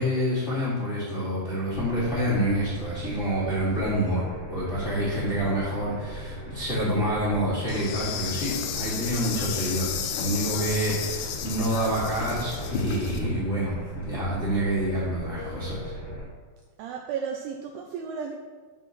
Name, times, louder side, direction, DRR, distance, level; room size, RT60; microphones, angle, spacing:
voice 1, 0.0-15.9, equal, 25° left, -10 dB, 1.7 m, -27 dB
sound 1, 1.7-16.3, right 1 dB, 65° left, 4.4 m, -39 dB
Insect, 7.7-13.2, left 8 dB, 85° left, 2.9 m, -33 dB
voice 2, 16.8-18.3, right 6 dB, 85° right, 2 dB, 2.3 m, -33 dB
9.1 x 4.2 x 6.0 m, 1.5 s
omnidirectional pair, 5.3 m